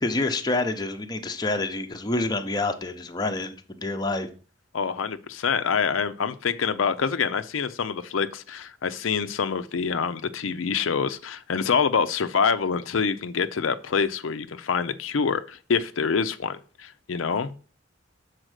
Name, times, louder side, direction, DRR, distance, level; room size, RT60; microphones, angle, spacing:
voice 1, 0.0-4.3, left 2 dB, 20° left, 0.7 m, -27 dB
voice 2, 4.7-17.5, left 6 dB, 85° left, 0.5 m, -26 dB
6.4 x 4.2 x 6.3 m
head